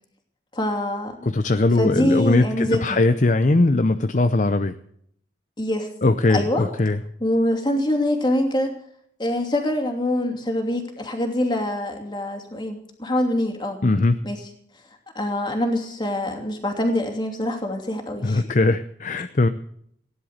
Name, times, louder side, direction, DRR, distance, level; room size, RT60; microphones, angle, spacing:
voice 1, 0.5-1.2 1.8-3.0 5.6-5.9 6.3-6.7 7.2-8.8 9.2-13.8 14.2-14.4 15.1-18.5, left 1 dB, 25° left, 3 dB, 2.8 m, -24 dB
voice 2, 1.3-4.8 6.0-7.0 13.8-14.2 18.2-19.5, left 2 dB, 45° left, 10 dB, 0.6 m, -20 dB
17.5 x 11.0 x 6.6 m, 0.67 s
head